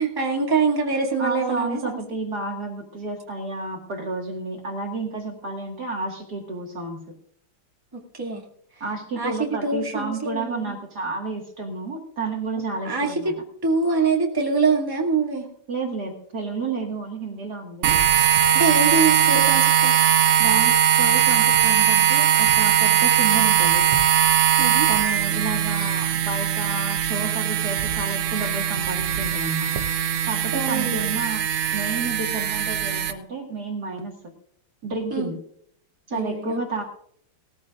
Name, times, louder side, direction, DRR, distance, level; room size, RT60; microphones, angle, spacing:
voice 1, 0.0-2.0 8.1-8.4 9.2-10.8 12.8-13.3 13.6-15.5 18.5-19.9 24.6-24.9 30.5-31.0 35.1-35.3 36.1-36.6, right 4 dB, 10° right, -1 dB, 2.2 m, -24 dB
voice 2, 1.2-7.0 8.8-13.3 15.7-18.0 20.4-23.9 24.9-29.7 30.2-31.5 31.7-34.1 34.8-35.4 36.1-36.8, right 3 dB, 50° right, 1 dB, 2.3 m, -31 dB
sound 1, 17.8-33.1, right 9 dB, 90° right, 1.8 m, -20 dB
19.5 x 14.0 x 2.5 m, 0.64 s
omnidirectional pair, 2.4 m